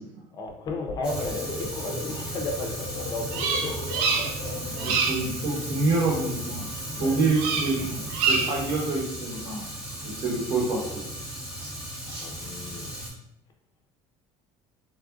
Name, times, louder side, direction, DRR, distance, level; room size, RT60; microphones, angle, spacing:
voice 1, 0.3-5.0 6.9-7.2 12.1-13.0, left 2 dB, 35° left, 3 dB, 0.6 m, -35 dB
sound 1, 0.9-5.3, left 4 dB, 90° left, 0.6 m, -38 dB
Fire, 1.0-13.1, right 1 dB, 5° right, 0.8 m, -35 dB
Bird vocalization bird call bird song, 3.3-4.5 4.8-5.3 7.3-7.8 8.1-8.7, right 5 dB, 90° right, 0.4 m, -26 dB
voice 2, 4.8-6.6 7.0-9.7 10.0-11.1 11.6-11.7 12.1-12.3, right 3 dB, 45° right, -3 dB, 1.0 m, -27 dB
3.3 x 2.5 x 2.3 m, 0.78 s
cardioid pair, 135°, 11 cm